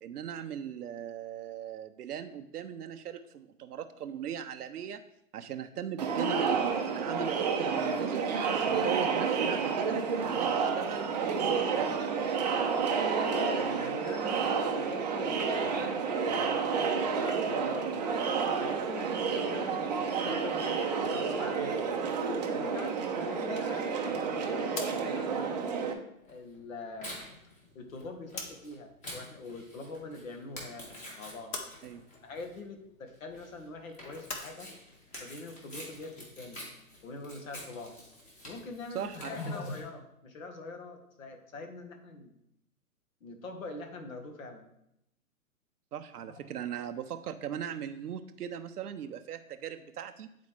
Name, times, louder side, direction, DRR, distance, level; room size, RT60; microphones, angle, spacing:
voice 1, 0.0-5.0 5.3-12.0 31.8-32.0 38.9-39.3 45.9-50.4, right 9 dB, 90° right, 7 dB, 0.6 m, -39 dB
Crowd, 6.0-25.9, right 5 dB, 30° right, 0.5 m, -30 dB
voice 2, 13.3-18.0 18.6-21.8 22.5-25.6 26.2-27.1 27.7-31.5 32.2-34.7 35.2-36.6 37.0-37.9 38.5-42.3 43.2-44.6 46.3-46.5, left 3 dB, 60° left, 5 dB, 1.4 m, -43 dB
sound 1, 24.7-28.8 29.1-30.2 30.5-34.5, left 4 dB, 30° left, 0.9 m, -45 dB
Tearing, 26.3-39.8, equal, 15° left, 1.4 m, -48 dB
9.5 x 4.2 x 3.2 m, 0.79 s
hypercardioid pair, 135°, 44 cm